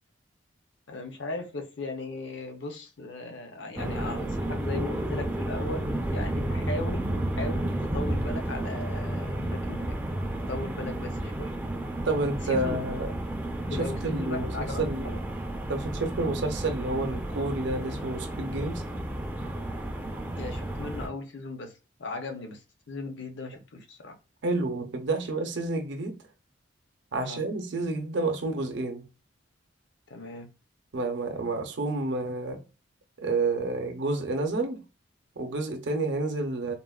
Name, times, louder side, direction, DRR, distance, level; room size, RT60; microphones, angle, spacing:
voice 1, 0.9-9.9 10.5-11.5 12.5-12.8 13.7-15.2 20.4-22.6 22.9-24.2 27.2-27.4 30.1-30.5, left 2 dB, 65° left, 0.6 m, -37 dB
sound 1, 3.8-21.1, right 1 dB, 10° right, 0.3 m, -32 dB
voice 2, 12.1-13.1 13.7-15.1 15.7-18.8 24.4-26.2 27.1-29.1 30.9-32.6 33.2-34.8 35.4-36.7, right 2 dB, 65° right, 0.6 m, -29 dB
3.7 x 2.1 x 2.3 m
head